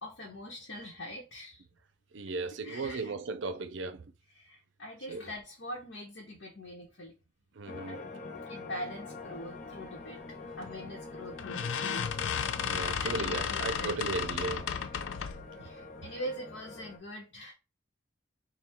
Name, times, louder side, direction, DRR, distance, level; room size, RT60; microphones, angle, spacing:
voice 1, 0.0-1.6 2.6-3.1 4.3-7.2 7.9-8.1 8.5-12.0 13.0-14.2 15.6-17.5, equal, 75° left, 1.1 m, -43 dB
voice 2, 2.1-4.0 5.1-5.2 7.6-8.0 12.6-14.7 15.5-15.6, right 3 dB, 80° right, 0.5 m, -36 dB
sound 1, 7.7-17.0, left 3 dB, 40° left, 0.8 m, -45 dB
sound 2, 10.6-10.9 11.4-15.5, left 7 dB, 90° left, 0.4 m, -33 dB
3.5 x 2.3 x 4.3 m
head